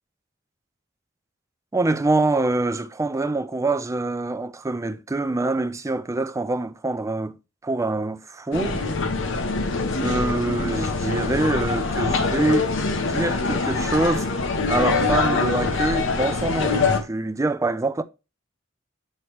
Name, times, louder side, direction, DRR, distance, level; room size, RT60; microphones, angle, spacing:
voice 1, 1.7-7.4 7.6-8.8 10.0-12.7 13.0-14.3 14.7-18.0, right 2 dB, 15° right, 0.4 m, -25 dB
sound 1, 8.5-17.0, left 3 dB, 65° left, 0.9 m, -24 dB
8.6 x 3.1 x 4.5 m
head